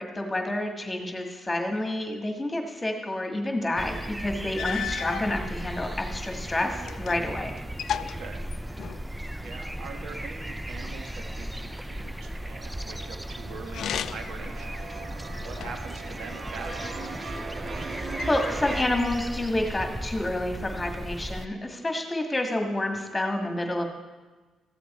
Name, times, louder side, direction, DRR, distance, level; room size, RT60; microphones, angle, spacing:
voice 1, 0.0-7.5 17.9-23.9, left 1 dB, 15° left, 3 dB, 1.7 m, -29 dB
sound 1, 3.8-21.5, right 1 dB, 5° right, 0.4 m, -36 dB
sound 2, 4.0-4.1 4.5-5.3 6.1-7.3 7.6-9.1 13.7-14.4 15.0-16.0 16.7-17.5 18.2-18.9, left 9 dB, 65° left, 0.3 m, -35 dB
voice 2, 7.9-8.5 9.4-17.1, right 5 dB, 70° right, 4 dB, 1.4 m, -43 dB
sound 3, 10.6-11.4 11.7-18.8, right 4 dB, 40° right, 0.9 m, -40 dB
14.0 x 7.6 x 4.2 m, 1.3 s
cardioid pair, 90°, 0 cm